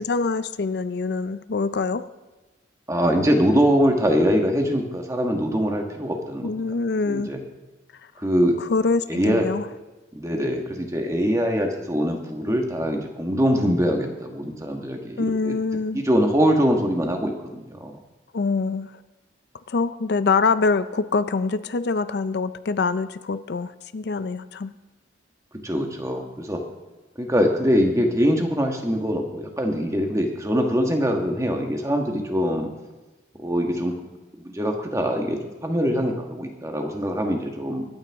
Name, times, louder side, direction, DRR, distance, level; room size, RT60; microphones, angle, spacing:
voice 1, 0.0-2.0 6.4-7.3 8.7-9.7 15.2-16.0 18.3-18.9 19.7-24.7, left 4 dB, 60° left, 13 dB, 0.5 m, -24 dB
voice 2, 2.9-6.5 7.0-7.4 8.2-8.6 9.1-9.5 10.1-15.5 15.9-18.0 25.6-26.6 27.2-32.7 33.4-33.9 34.4-37.9, equal, 15° right, 3 dB, 1.4 m, -23 dB
22.5 x 9.0 x 3.5 m, 1.1 s
head